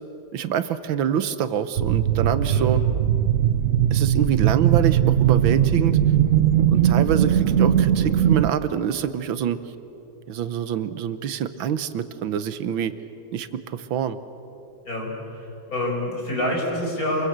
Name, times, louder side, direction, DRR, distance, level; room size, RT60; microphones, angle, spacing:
voice 1, 0.3-2.8 3.9-6.0 6.7-9.6 10.3-12.9 13.3-14.2, right 9 dB, 85° right, 12 dB, 1.7 m, -26 dB
sound 1, 1.8-8.5, right 10 dB, 65° right, 0.8 m, -19 dB
voice 2, 2.4-2.7 14.8-17.3, left 1 dB, 45° left, -2 dB, 6.2 m, -27 dB
27.5 x 22.0 x 8.1 m, 2.8 s
omnidirectional pair, 2.1 m